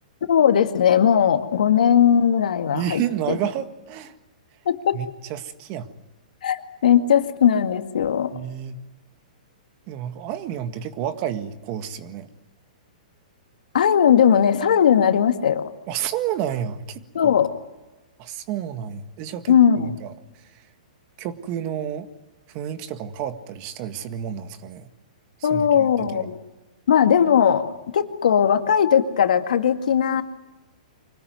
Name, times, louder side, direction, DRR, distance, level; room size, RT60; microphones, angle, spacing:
voice 1, 0.3-3.0 4.7-5.0 6.4-8.3 13.7-15.7 17.1-17.5 19.5-20.0 25.4-26.4 26.9-30.2, left 8 dB, 75° left, 7 dB, 2.1 m, -18 dB
voice 2, 2.7-4.1 4.9-5.9 8.3-8.8 9.9-12.3 15.9-17.3 18.2-20.1 21.2-22.1 22.5-24.9 25.5-26.3, right 10 dB, 40° right, 10 dB, 1.8 m, -30 dB
25.0 x 18.5 x 9.5 m, 1.1 s
hypercardioid pair, 140°, 4 cm